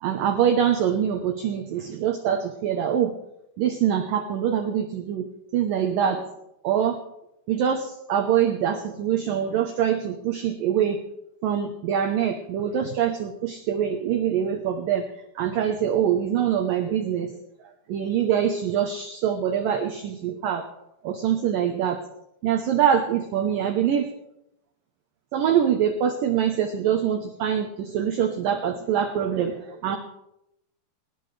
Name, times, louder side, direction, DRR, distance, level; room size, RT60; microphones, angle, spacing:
voice 1, 0.0-3.1 3.6-6.2 6.6-7.0 7.5-11.0 11.4-15.1 15.4-17.3 17.9-20.6 21.0-22.0 22.4-24.1 25.3-30.0, right 9 dB, 85° right, 5 dB, 1.9 m, -24 dB
20.0 x 18.5 x 3.3 m, 0.85 s
omnidirectional pair, 5.4 m